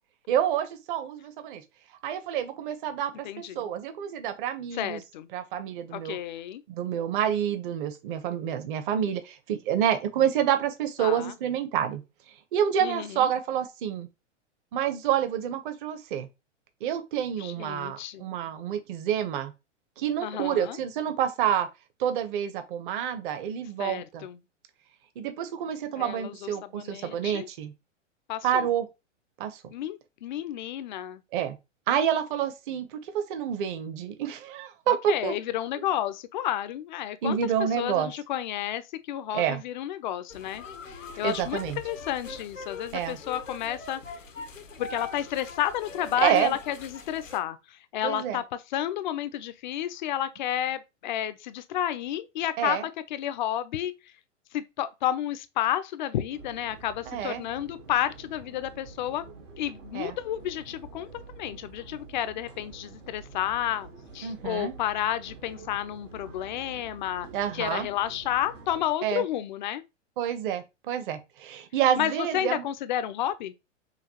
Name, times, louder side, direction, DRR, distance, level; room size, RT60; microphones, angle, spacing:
voice 1, 0.3-1.6 2.0-5.0 5.3-6.2 6.7-12.0 12.5-14.1 14.7-16.3 16.8-19.5 20.0-21.7 22.0-24.2 25.2-27.7 28.4-28.9 29.4-29.7 31.3-31.6 31.9-35.3 37.2-38.1 39.3-39.6 41.2-41.8 42.9-43.2 46.2-46.6 48.0-48.4 52.6-52.9 57.1-57.4 59.9-60.2 64.2-64.7 67.3-67.9 69.0-69.2 70.2-72.6, right 9 dB, 45° right, 0.8 m, -28 dB
voice 2, 3.2-3.7 4.7-5.3 5.9-6.6 11.0-11.3 12.8-13.3 17.4-18.3 20.2-20.8 23.8-24.4 26.0-27.5 28.3-28.7 29.7-31.2 34.9-37.4 37.8-44.0 44.8-52.8 53.1-54.1 54.5-59.2 59.6-67.3 67.5-69.8 72.0-73.5, left 11 dB, 40° left, 0.4 m, -31 dB
sound 1, 40.3-47.4, left 3 dB, 90° left, 0.9 m, -42 dB
sound 2, 56.3-68.9, right 4 dB, 75° right, 1.3 m, -48 dB
5.7 x 2.3 x 2.9 m
figure-of-eight pair, 105°, 37 cm